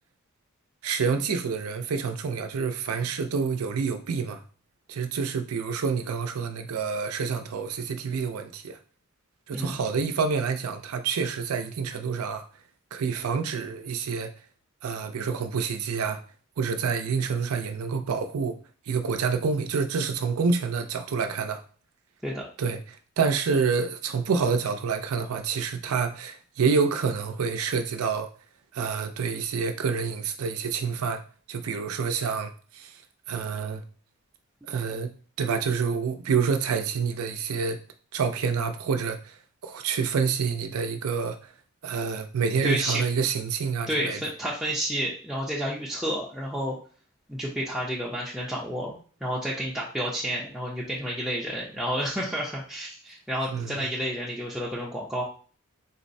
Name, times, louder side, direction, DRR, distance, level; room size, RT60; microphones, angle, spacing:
voice 1, 0.8-4.4 4.9-8.8 9.5-12.5 12.9-14.3 14.8-16.2 16.6-18.6 18.9-21.6 22.6-22.8 23.2-28.3 28.7-31.2 31.5-33.0 33.3-33.8 34.7-35.1 35.4-37.8 38.1-39.4 39.6-41.5 41.8-44.2 53.5-53.9, right 5 dB, 85° right, 0.4 m, -27 dB
voice 2, 42.6-43.0 43.9-46.8 47.3-55.2, equal, ahead, 0.5 m, -30 dB
3.8 x 2.0 x 2.6 m
head